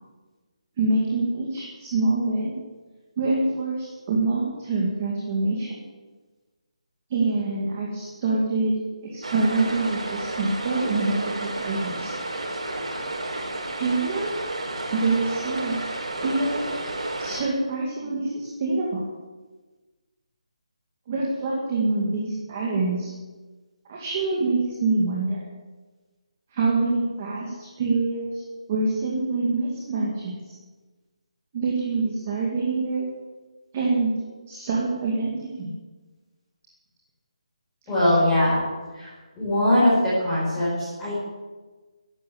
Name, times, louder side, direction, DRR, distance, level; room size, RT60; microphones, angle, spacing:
voice 1, 0.8-2.5 3.2-5.7 7.1-8.7 9.1-12.1 13.7-14.3 14.9-15.8 16.2-16.7 17.2-19.0 21.1-23.1 23.9-25.4 26.5-28.4 28.7-30.4 31.5-33.1 33.7-34.1 34.5-35.7, right 3 dB, 20° right, -3 dB, 2.0 m, -25 dB
sound 1, 9.2-17.4, right 2 dB, 85° right, 4.9 m, -31 dB
voice 2, 37.9-38.6 38.9-39.1 39.4-41.2, left 1 dB, 5° left, -10 dB, 5.2 m, -21 dB
15.0 x 11.0 x 8.6 m, 1.3 s
hypercardioid pair, 180°, 3 cm